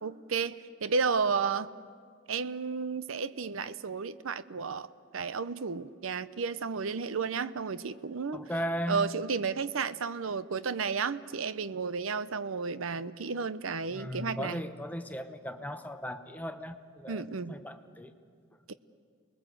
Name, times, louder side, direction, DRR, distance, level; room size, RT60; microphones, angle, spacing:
voice 1, 0.0-1.7 2.3-8.4 8.9-14.6 17.1-17.5 18.7-18.8, right 5 dB, 75° right, 14 dB, 0.7 m, -32 dB
voice 2, 8.3-9.1 13.9-18.1, equal, 10° left, 7 dB, 0.9 m, -37 dB
29.5 x 20.5 x 7.8 m, 2.1 s
head